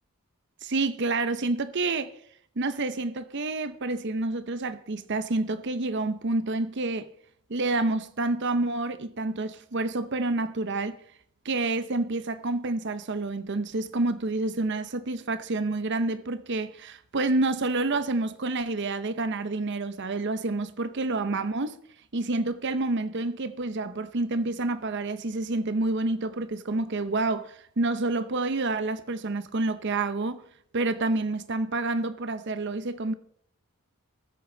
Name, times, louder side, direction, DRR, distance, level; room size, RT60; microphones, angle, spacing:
voice 1, 0.6-2.1 2.6-7.1 7.5-11.0 11.4-21.8 22.1-30.4 30.7-33.1, right 2 dB, 55° right, 0.7 m, -28 dB
19.5 x 8.1 x 3.9 m
head